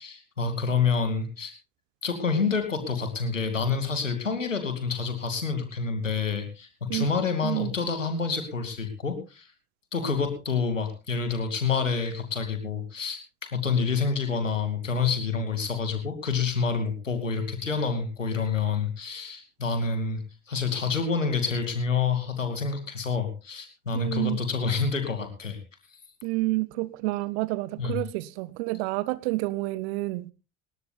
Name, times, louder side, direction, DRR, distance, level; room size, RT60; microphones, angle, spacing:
voice 1, 0.0-1.5 2.0-9.5 9.9-13.2 13.5-25.6 27.8-28.0, left 5 dB, 85° left, 2.7 m, -28 dB
voice 2, 7.4-7.7 23.9-24.4 26.2-30.3, right 21 dB, 60° right, 0.8 m, -29 dB
19.0 x 17.5 x 2.4 m
figure-of-eight pair, 60°, 37 cm